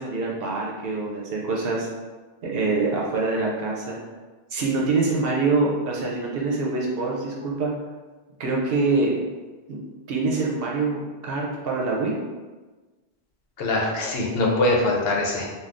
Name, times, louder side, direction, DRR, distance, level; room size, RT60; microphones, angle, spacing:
voice 1, 0.0-1.9 2.4-4.0 4.5-7.7 8.4-9.2 9.7-9.8 10.1-12.2, right 3 dB, 65° right, -2 dB, 0.8 m, -25 dB
voice 2, 13.6-15.5, left 2 dB, 70° left, -2 dB, 0.8 m, -22 dB
2.5 x 2.3 x 3.3 m, 1.3 s
omnidirectional pair, 1.1 m